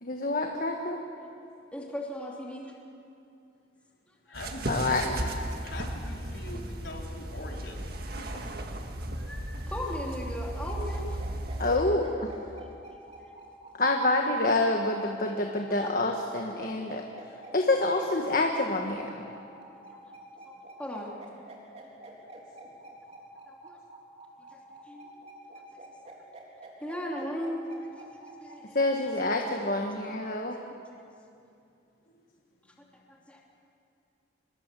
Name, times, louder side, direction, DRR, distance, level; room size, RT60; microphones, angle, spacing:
voice 1, 0.0-1.0 4.7-5.0 11.6-12.3 13.8-17.0 17.5-19.2 28.7-30.6, left 2 dB, 45° left, 2 dB, 1.5 m, -27 dB
voice 2, 1.7-2.7 4.3-4.4 9.3-11.2 12.6-12.8 13.2-13.4 15.7-16.1 19.9-20.0 20.5-21.1 23.5-23.8 24.9-25.1 26.8-28.8 30.0-30.1 33.1-33.4, equal, 5° left, -3 dB, 3.1 m, -38 dB
voice 3, 4.3-5.3 5.6-7.8 25.0-25.7 32.1-32.3 32.5-32.9, left 1 dB, 70° left, -1 dB, 4.1 m, -43 dB
sound 1, 4.3-11.8, right 1 dB, 55° right, 1.8 m, -35 dB
sound 2, 10.6-29.9, right 2 dB, 35° right, 3.9 m, -48 dB
26.0 x 21.0 x 7.6 m, 2.6 s
head